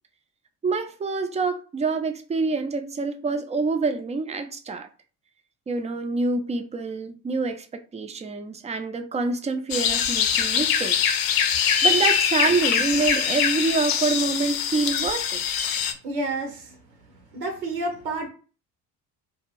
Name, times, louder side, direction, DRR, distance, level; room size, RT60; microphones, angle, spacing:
voice 1, 0.6-4.9 5.7-11.1 11.6-15.4, right 3 dB, 15° right, 0.4 m, -26 dB
sound 1, 9.7-15.9, left 7 dB, 45° left, 0.6 m, -23 dB
voice 2, 16.0-16.8 17.3-18.3, right 2 dB, 85° right, 0.9 m, -29 dB
2.5 x 2.5 x 3.1 m
hypercardioid pair, 55°, 48 cm